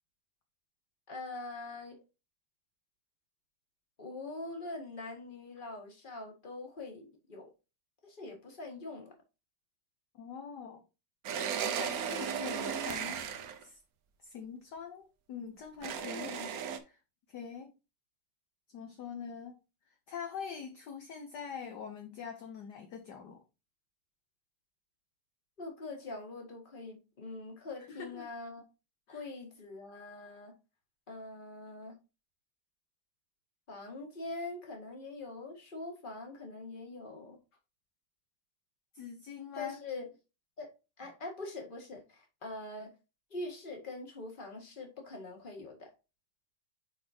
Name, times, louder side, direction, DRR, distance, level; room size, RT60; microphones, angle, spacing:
voice 1, 1.1-2.0 4.0-7.5 8.0-9.1 16.1-16.5 25.6-28.6 29.1-30.5 31.1-31.9 33.7-37.4 39.5-40.1 40.6-40.7 41.0-42.9 43.3-45.9, left 2 dB, 25° left, 1.8 m, -43 dB
voice 2, 10.1-10.8 11.8-13.2 13.6-13.8 14.2-16.3 16.8-17.0 17.3-17.7 18.7-19.6 20.1-23.4 27.9-28.3 29.1-29.3 38.9-39.8, left 7 dB, 60° left, 1.3 m, -44 dB
sound 1, 11.2-13.6 15.8-16.8, right 7 dB, 60° right, 1.0 m, -35 dB
9.6 x 4.2 x 2.8 m
omnidirectional pair, 2.3 m